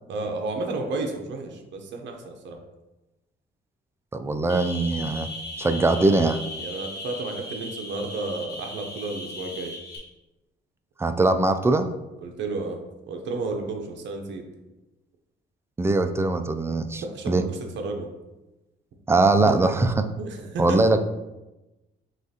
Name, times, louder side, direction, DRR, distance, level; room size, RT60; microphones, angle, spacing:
voice 1, 0.1-2.6 6.6-9.7 12.2-12.8 13.1-14.4 17.0-18.1 19.4-19.5 20.2-20.8, right 3 dB, 65° right, 3 dB, 0.7 m, -32 dB
voice 2, 4.1-5.3 5.6-6.4 11.0-11.9 15.8-17.4 19.1-19.9 20.6-21.0, right 2 dB, 15° right, 8 dB, 0.3 m, -21 dB
sound 1, 4.5-10.0, left 1 dB, 55° left, 1.1 m, -37 dB
6.0 x 2.4 x 2.8 m, 1.0 s
cardioid pair, 90°, 20 cm